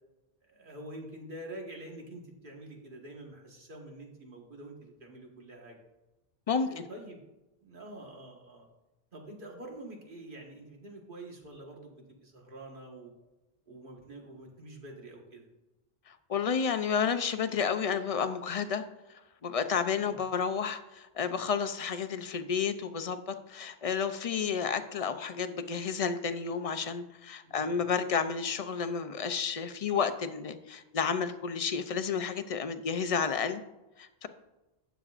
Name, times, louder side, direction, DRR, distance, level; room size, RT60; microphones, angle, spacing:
voice 1, 0.4-5.8 6.5-7.2 7.6-8.7 9.1-13.1 13.7-15.5 20.0-20.2 27.4-27.8, right 1 dB, 55° right, 0 dB, 1.7 m, -47 dB
voice 2, 6.5-6.8 16.1-18.8 19.4-33.6 34.0-34.3, left 6 dB, 45° left, 9 dB, 0.5 m, -31 dB
12.0 x 8.1 x 2.5 m, 1.0 s
omnidirectional pair, 1.0 m